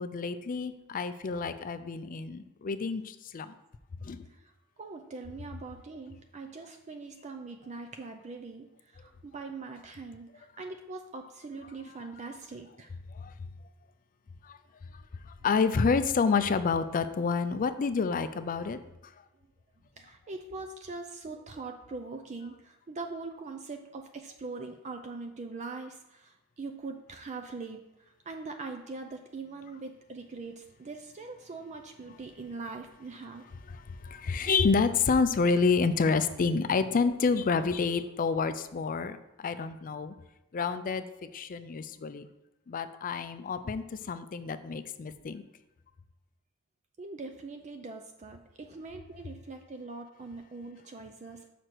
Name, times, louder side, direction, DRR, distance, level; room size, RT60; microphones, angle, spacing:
voice 1, 0.0-3.5 4.0-4.2 13.1-13.3 14.4-14.6 14.9-18.8 33.7-40.1 40.5-42.3 42.7-45.4, left 4 dB, 40° left, 11 dB, 0.4 m, -29 dB
voice 2, 4.8-12.9 20.0-33.4 47.0-51.5, right 3 dB, 30° right, 5 dB, 0.4 m, -42 dB
6.4 x 5.0 x 4.5 m, 0.96 s
head